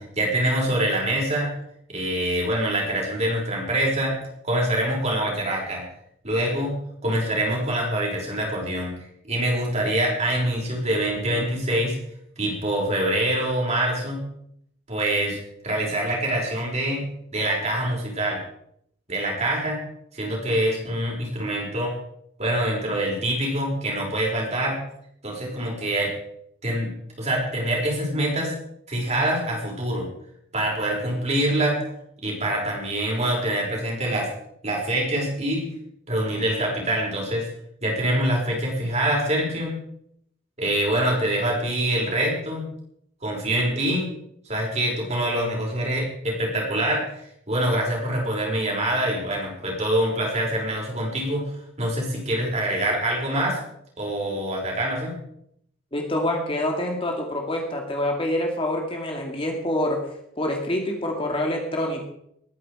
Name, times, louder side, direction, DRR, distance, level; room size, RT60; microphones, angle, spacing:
voice 1, 0.0-1.5 1.9-4.2 4.4-5.8 6.2-8.9 9.2-12.0 12.4-14.2 14.9-15.4 15.6-18.4 19.1-19.8 20.1-21.9 22.4-24.8 25.2-26.1 26.6-26.9 27.2-28.5 28.9-30.1 30.5-31.8 32.2-34.3 34.6-35.7 36.1-37.5 37.8-39.8 40.6-42.7 43.2-44.1 44.5-47.0 47.5-51.5 51.8-53.6 54.0-55.1, right 1 dB, 30° right, -2 dB, 5.5 m, -25 dB
voice 2, 55.9-60.0 60.4-62.1, left 1 dB, 25° left, 1 dB, 2.3 m, -26 dB
20.5 x 10.0 x 5.0 m, 0.72 s
head